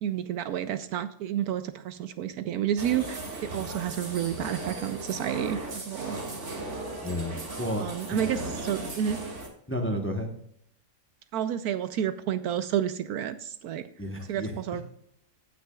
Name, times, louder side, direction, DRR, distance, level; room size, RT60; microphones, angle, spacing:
voice 1, 0.0-6.2 7.8-9.2 11.3-13.9 14.3-14.8, right 10 dB, 75° right, 11 dB, 1.0 m, -30 dB
sound 1, 2.8-9.5, right 2 dB, 45° right, 2.1 m, -37 dB
voice 2, 7.0-8.3 9.7-10.3 14.0-14.6, equal, 10° left, 4 dB, 0.9 m, -32 dB
16.5 x 6.0 x 2.3 m, 0.72 s
omnidirectional pair, 1.7 m